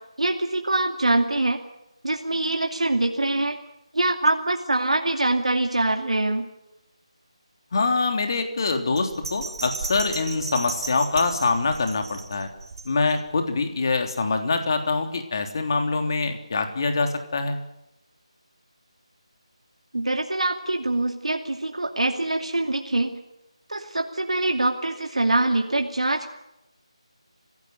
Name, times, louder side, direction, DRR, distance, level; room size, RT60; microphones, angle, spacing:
voice 1, 0.2-1.6 2.0-3.6 3.9-6.5 19.9-23.2 23.7-26.3, right 2 dB, 80° right, 3 dB, 2.5 m, -24 dB
voice 2, 7.7-12.5 12.8-17.6, left 3 dB, 40° left, 5 dB, 3.3 m, -24 dB
Bell, 9.0-13.3 13.7-13.8, right 4 dB, 35° right, 4.3 m, -35 dB
28.0 x 17.0 x 9.5 m, 0.94 s
figure-of-eight pair, 165°, 3 cm